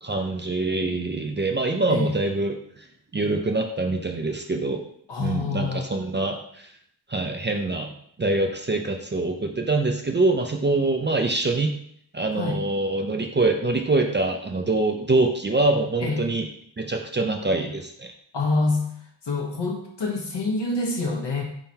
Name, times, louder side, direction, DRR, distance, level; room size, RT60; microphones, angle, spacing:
voice 1, 0.0-2.8 3.1-4.8 5.2-6.7 7.1-7.9 8.2-11.7 12.1-16.5 16.8-18.1, right 2 dB, 25° right, 3 dB, 0.5 m, -24 dB
voice 2, 5.1-5.9 12.3-12.6 16.0-16.3 18.3-18.9 19.2-21.4, left 3 dB, 65° left, 0 dB, 1.1 m, -26 dB
4.2 x 3.8 x 2.8 m, 0.67 s
cardioid pair, 55°, 45 cm